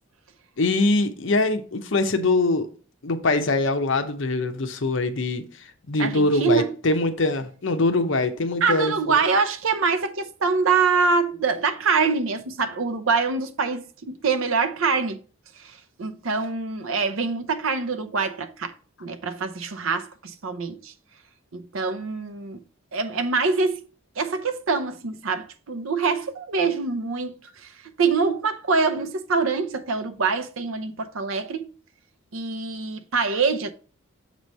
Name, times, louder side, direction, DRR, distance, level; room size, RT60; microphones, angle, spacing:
voice 1, 0.6-2.7 3.0-9.2, left 2 dB, 60° left, 0.7 m, -23 dB
voice 2, 6.0-6.7 8.6-15.2 15.6-18.7 19.0-20.9 21.5-22.6 22.9-23.8 24.2-27.7 28.0-31.7 32.3-33.7, right 4 dB, 75° right, 0.7 m, -25 dB
6.8 x 3.1 x 5.3 m
head